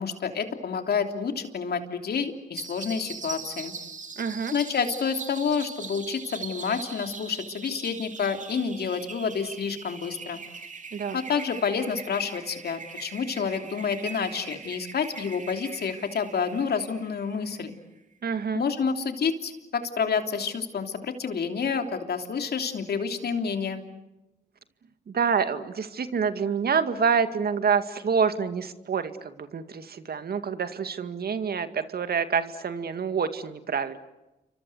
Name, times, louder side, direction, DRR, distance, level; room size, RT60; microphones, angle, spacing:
voice 1, 0.0-3.7 4.5-10.4 11.1-17.7 18.5-23.8, left 6 dB, 70° left, 6 dB, 3.2 m, -29 dB
sound 1, 2.6-17.8, right 4 dB, 45° right, 2.9 m, -41 dB
voice 2, 4.2-4.5 10.9-11.2 18.2-18.6 25.1-34.0, right 6 dB, 65° right, 10 dB, 2.1 m, -27 dB
29.0 x 24.5 x 8.0 m, 1.0 s
cardioid pair, 55°, 17 cm